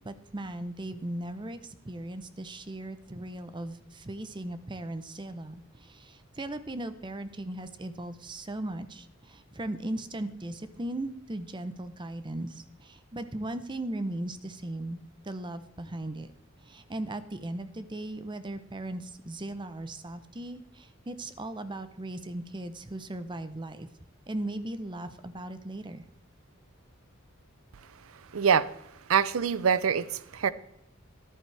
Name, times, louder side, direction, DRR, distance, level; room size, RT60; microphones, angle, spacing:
voice 1, 0.0-15.0 15.2-16.3 16.6-23.9 24.3-26.0, right 1 dB, 20° right, 11 dB, 0.7 m, -38 dB
voice 2, 28.3-28.7 29.1-30.5, right 7 dB, 80° right, 17 dB, 0.5 m, -24 dB
14.0 x 11.0 x 3.3 m, 0.80 s
head